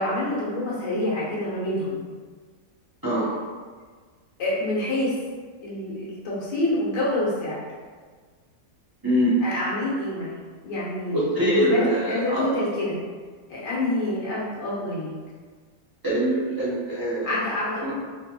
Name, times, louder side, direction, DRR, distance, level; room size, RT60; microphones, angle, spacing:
voice 1, 0.0-2.0 4.4-5.1 5.6-7.6 9.4-10.4 10.6-13.0 13.5-15.1 17.2-17.9, left 1 dB, 90° left, -7 dB, 1.6 m, -27 dB
voice 2, 9.0-9.4 11.1-12.5 16.0-17.3 17.8-17.9, equal, 25° right, -11 dB, 0.5 m, -23 dB
4.0 x 2.2 x 2.9 m, 1.5 s
omnidirectional pair, 1.8 m